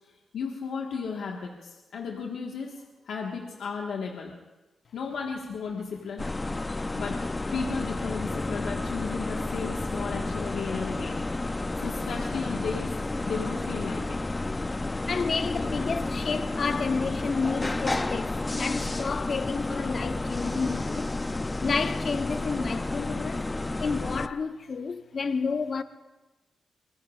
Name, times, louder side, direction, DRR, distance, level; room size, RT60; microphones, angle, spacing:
voice 1, 0.3-4.3 4.9-6.3 6.9-11.2 11.8-12.9 13.2-14.2, left 5 dB, 80° left, 1.5 m, -34 dB
sound 1, 6.2-24.3, left 2 dB, 25° left, 0.5 m, -31 dB
voice 2, 15.1-21.1 21.6-23.5 23.8-25.8, left 5 dB, 55° left, 0.8 m, -30 dB
24.5 x 20.5 x 2.5 m
cardioid pair, 60°, 0 cm